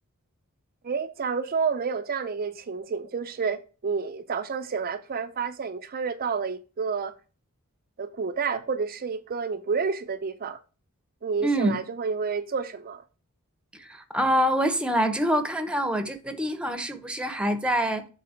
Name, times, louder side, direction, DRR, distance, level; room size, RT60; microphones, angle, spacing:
voice 1, 0.8-7.1 8.0-10.6 11.2-13.0, right 5 dB, 40° right, 0.5 m, -29 dB
voice 2, 11.4-11.8 13.7-18.1, equal, 5° right, 0.8 m, -25 dB
7.7 x 4.0 x 5.6 m
head